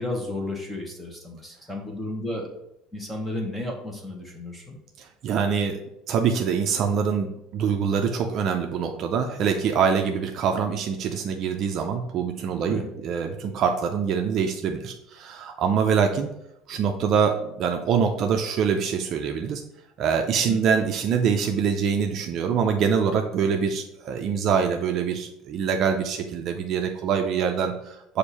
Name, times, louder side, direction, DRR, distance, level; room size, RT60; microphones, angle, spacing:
voice 1, 0.0-2.5 2.9-4.8 12.6-12.9 20.5-20.6, left 2 dB, 5° left, 1 dB, 1.1 m, -33 dB
voice 2, 5.0-5.8 6.1-16.3 16.7-19.6 20.0-28.2, right 6 dB, 40° right, 3 dB, 0.5 m, -24 dB
6.5 x 2.6 x 5.6 m, 0.81 s
cardioid pair, 165°, 0 cm